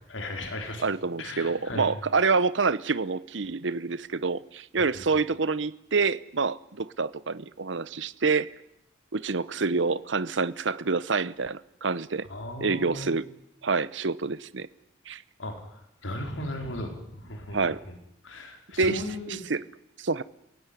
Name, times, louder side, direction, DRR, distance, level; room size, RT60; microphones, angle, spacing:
voice 1, 0.1-0.8 1.2-1.9 12.3-13.1 15.4-17.8 18.2-19.5, left 1 dB, 90° left, 4.3 m, -36 dB
voice 2, 0.8-8.5 9.1-12.3 12.6-13.3 13.6-14.7 15.1-15.2 17.5-17.8 18.8-19.6 20.0-20.2, right 4 dB, 75° right, 0.9 m, -27 dB
29.5 x 17.0 x 9.9 m
head